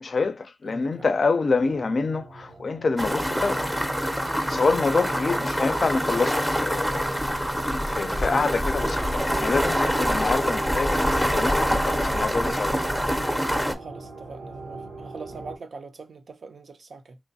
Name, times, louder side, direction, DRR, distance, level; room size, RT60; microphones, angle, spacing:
voice 1, 0.0-3.6 4.5-7.5 7.9-12.8, left 4 dB, 60° left, 0.4 m, -26 dB
voice 2, 0.6-1.1 1.4-1.6 5.1-5.7 13.8-17.2, right 4 dB, 70° right, 0.5 m, -42 dB
sound 1, 1.6-15.6, right 3 dB, 85° right, 0.9 m, -41 dB
sound 2, 3.0-13.7, equal, 5° right, 0.6 m, -25 dB
3.0 x 2.2 x 2.6 m
cardioid pair, 55°, 0 cm